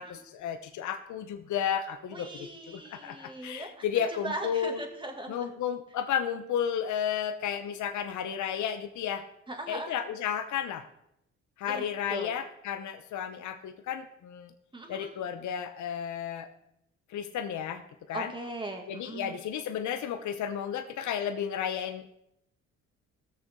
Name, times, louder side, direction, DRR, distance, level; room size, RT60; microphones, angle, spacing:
voice 1, 0.0-2.3 2.7-4.8 5.3-9.3 9.7-10.9 11.6-14.5 14.9-16.5 17.1-17.8 18.1-18.3 18.9-22.2, left 8 dB, 75° left, 7 dB, 0.9 m, -33 dB
voice 2, 2.1-3.9 4.2-5.5 9.5-10.0 11.6-12.3 14.7-15.1 18.1-19.3, right 2 dB, 15° right, 2 dB, 2.4 m, -39 dB
18.0 x 6.7 x 3.8 m, 0.80 s
cardioid pair, 90°, 30 cm